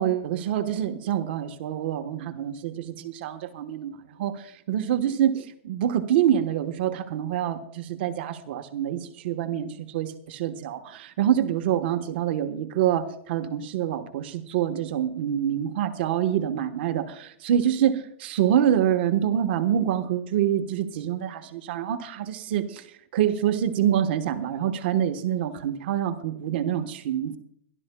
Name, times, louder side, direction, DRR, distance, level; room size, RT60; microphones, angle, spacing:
voice 1, 0.0-22.9 23.1-27.4, right 10 dB, 55° right, 6 dB, 1.1 m, -26 dB
26.5 x 12.0 x 2.3 m, 0.68 s
supercardioid pair, 170°, 7 cm